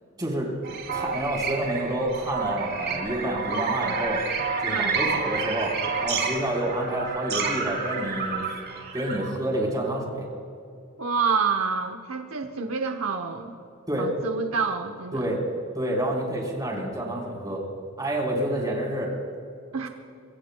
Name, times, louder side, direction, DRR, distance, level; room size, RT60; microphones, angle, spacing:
voice 1, 0.2-0.5 0.9-4.2 4.6-5.7 6.0-8.4 8.9-10.3 13.9-14.1 15.1-15.4 15.7-17.6 18.0-19.1, right 1 dB, 20° right, -2 dB, 4.2 m, -28 dB
sound 1, 0.6-9.3, right 5 dB, 55° right, 3.0 m, -29 dB
voice 2, 4.7-5.0 11.0-13.5 14.0-15.2 19.7-19.9, right 5 dB, 75° right, 5 dB, 0.9 m, -28 dB
26.0 x 23.0 x 2.3 m, 2.5 s
head